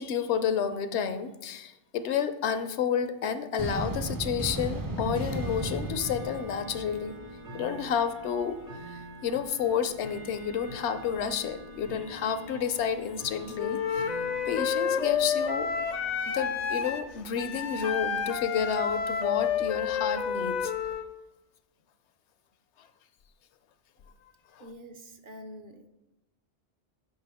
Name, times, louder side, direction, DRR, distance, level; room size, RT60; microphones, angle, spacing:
voice 1, 0.0-7.1 7.5-8.6 8.9-14.0 14.5-15.7 16.3-20.7 24.6-24.7, left 7 dB, 75° left, 11 dB, 0.9 m, -30 dB
sound 1, 3.6-7.6, right 1 dB, 30° right, 0.4 m, -35 dB
Bell / Tick-tock, 4.6-20.9, right 1 dB, 75° right, 1.9 m, -46 dB
Wind instrument woodwind instrument, 13.6-21.1, left 7 dB, 55° left, 0.5 m, -30 dB
voice 2, 24.6-25.9, equal, 55° right, 5 dB, 0.8 m, -46 dB
8.8 x 5.4 x 3.5 m, 0.94 s
omnidirectional pair, 1.2 m